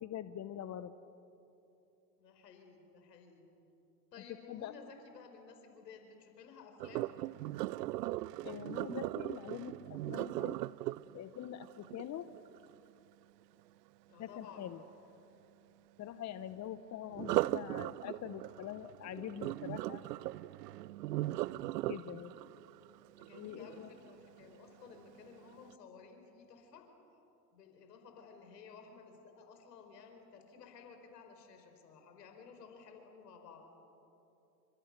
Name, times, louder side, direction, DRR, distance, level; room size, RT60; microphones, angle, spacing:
voice 1, 0.0-0.9 4.5-4.7 8.4-10.6 11.1-12.3 14.2-14.8 16.0-20.0 21.9-22.3 23.3-23.9, left 10 dB, 35° left, 12 dB, 1.0 m, -44 dB
voice 2, 2.2-3.4 4.1-7.1 14.1-14.7 23.2-26.9 27.5-33.7, left 5 dB, 80° left, 5 dB, 4.9 m, -55 dB
Sink (filling or washing), 6.8-12.8 17.1-24.2 24.7-25.0 25.5-25.6, right 17 dB, 75° right, 0.6 m, -38 dB
29.0 x 26.0 x 6.8 m, 2.9 s
hypercardioid pair, 85°, 48 cm